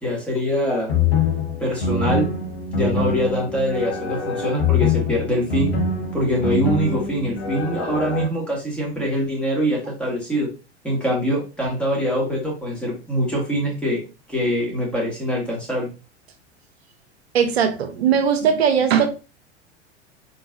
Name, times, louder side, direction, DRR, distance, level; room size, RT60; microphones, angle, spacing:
voice 1, 0.0-0.9 1.6-2.3 2.7-5.7 6.1-10.5 10.8-14.0 14.3-15.9, equal, 5° left, 2.2 m, -23 dB
sound 1, 0.9-8.3, left 4 dB, 65° left, 1.0 m, -24 dB
voice 2, 17.3-19.1, right 7 dB, 65° right, 0.8 m, -19 dB
4.0 x 3.9 x 2.7 m
figure-of-eight pair, 85°, 34 cm